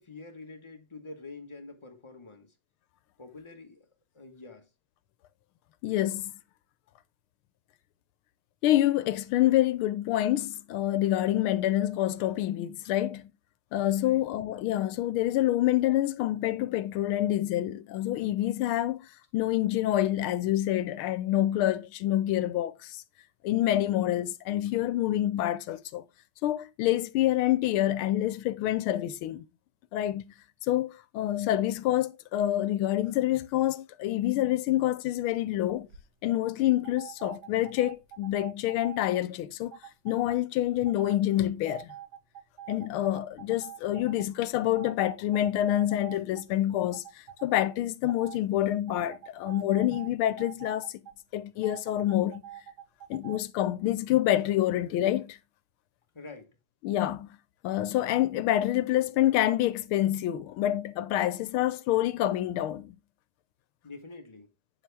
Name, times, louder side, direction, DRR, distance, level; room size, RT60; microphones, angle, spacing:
voice 1, 0.0-2.5 3.2-3.9 4.1-4.7 14.0-14.2 56.1-56.5 63.8-64.5, left 3 dB, 20° left, 1.0 m, -46 dB
voice 2, 5.8-6.3 8.6-13.2 13.7-19.0 19.3-23.0 23.4-26.0 26.4-29.4 29.9-30.2 30.7-35.9 36.2-39.7 40.0-41.9 42.7-47.0 47.4-50.9 51.3-52.4 53.1-55.4 56.8-57.3 57.6-62.9, left 13 dB, 85° left, 1.5 m, -27 dB
sound 1, 35.6-36.0 36.8-39.2 39.7-40.4 40.9-41.2 41.7-44.3 44.8-46.6 46.9-47.6 48.1-48.4 48.9-51.2 51.6-53.4, right 11 dB, 70° right, 1.9 m, -46 dB
9.1 x 7.2 x 3.4 m
omnidirectional pair, 2.3 m